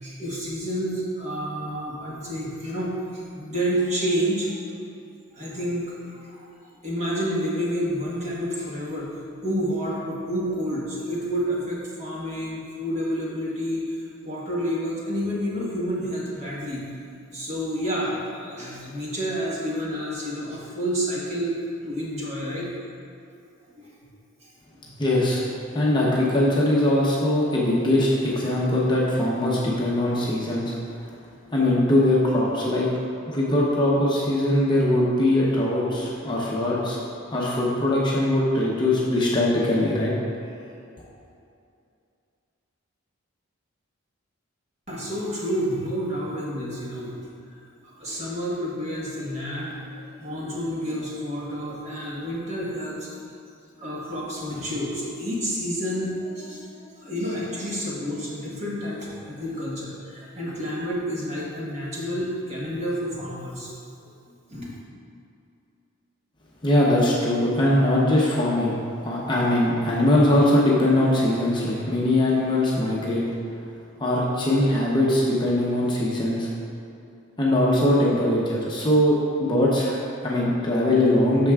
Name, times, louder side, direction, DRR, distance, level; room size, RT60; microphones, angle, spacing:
voice 1, 0.0-4.6 5.3-6.5 6.8-16.9 17.3-21.5 21.8-22.7 23.8-23.9 24.4-24.5 44.9-47.3 47.8-53.1 53.8-63.7 64.5-64.8, equal, 30° right, -5 dB, 1.3 m, -29 dB
voice 2, 25.0-25.4 25.7-30.7 31.5-32.9 33.3-37.0 37.3-40.1 66.6-73.2 74.0-76.5 77.4-81.5, left 1 dB, 20° left, -5 dB, 0.7 m, -21 dB
8.9 x 6.5 x 2.4 m, 2.6 s
head